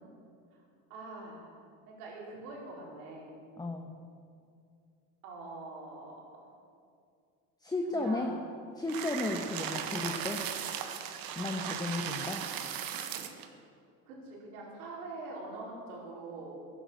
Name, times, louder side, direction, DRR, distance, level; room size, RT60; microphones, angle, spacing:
voice 1, 0.9-1.6 1.9-3.3 5.2-6.5 7.9-8.4 14.1-16.6, right 2 dB, 85° right, -3 dB, 4.7 m, -44 dB
voice 2, 3.6-3.9 7.6-8.3 8.8-10.4 11.3-12.4, left 2 dB, 10° left, 3 dB, 1.1 m, -34 dB
sound 1, 8.9-13.5, right 9 dB, 55° right, 1.5 m, -37 dB
15.5 x 11.0 x 6.4 m, 2.4 s
supercardioid pair, 100°, 43 cm